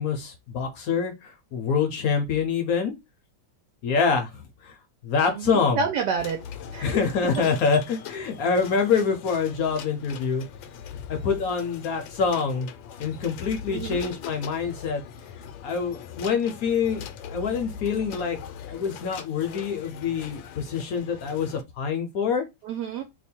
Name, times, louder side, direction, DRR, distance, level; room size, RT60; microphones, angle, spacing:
voice 1, 0.0-3.0 3.8-4.7 5.0-5.8 6.8-10.4 11.1-12.7 13.0-15.0 15.6-18.4 18.7-22.5, left 5 dB, 65° left, 1.0 m, -26 dB
voice 2, 5.3-6.4 6.7-7.0 13.7-14.0 22.6-23.0, right 6 dB, 70° right, 1.1 m, -29 dB
sound 1, 6.2-21.6, left 7 dB, 80° left, 1.3 m, -41 dB
3.0 x 2.2 x 4.2 m
omnidirectional pair, 2.1 m